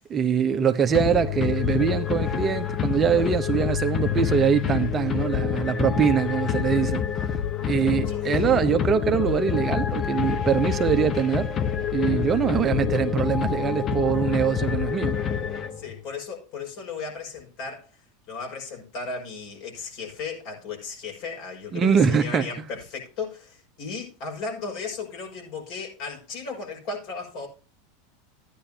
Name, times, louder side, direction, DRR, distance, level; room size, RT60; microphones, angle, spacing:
voice 1, 0.1-7.0 7.6-11.5 11.9-15.2 21.7-22.5, right 7 dB, 30° right, 0.9 m, -23 dB
sound 1, 0.9-16.0, left 8 dB, 35° left, 0.9 m, -27 dB
voice 2, 15.8-17.9 18.3-27.5, left 4 dB, 60° left, 6.0 m, -35 dB
14.0 x 10.0 x 2.8 m
hypercardioid pair, 105°, 0 cm